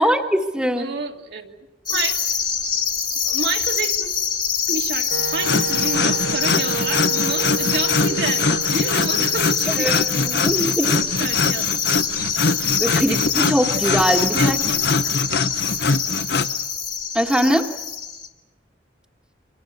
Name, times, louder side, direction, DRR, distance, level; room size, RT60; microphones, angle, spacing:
voice 1, 0.0-0.9 9.8-11.0 12.8-14.6 17.1-17.7, equal, 5° right, 3 dB, 1.4 m, -21 dB
voice 2, 0.8-2.2 3.2-4.1 4.7-10.2 10.6-12.1 13.1-13.2 14.3-15.1, right 3 dB, 60° right, 3 dB, 1.9 m, -30 dB
sound 1, 1.9-18.3, left 7 dB, 25° left, 1.6 m, -24 dB
Wind instrument woodwind instrument, 5.1-10.9, right 8 dB, 80° right, 0.8 m, -32 dB
sound 2, 5.4-16.5, left 3 dB, 60° left, 0.8 m, -23 dB
29.0 x 24.5 x 6.7 m, 1.1 s
head